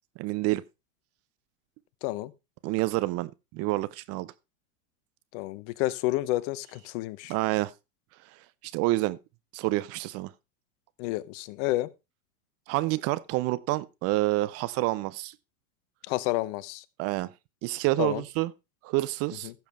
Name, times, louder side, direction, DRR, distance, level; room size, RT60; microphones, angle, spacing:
voice 1, 0.2-0.6 2.6-4.3 7.3-7.7 8.6-9.2 9.5-10.3 12.7-15.3 17.0-17.3 17.6-18.5 18.8-19.5, right 19 dB, 35° right, 0.5 m, -28 dB
voice 2, 2.0-2.3 5.3-7.3 11.0-11.9 16.1-16.8 18.0-18.2 19.4-19.5, left 17 dB, 50° left, 0.9 m, -30 dB
15.0 x 7.1 x 3.4 m
hypercardioid pair, 110°, 44 cm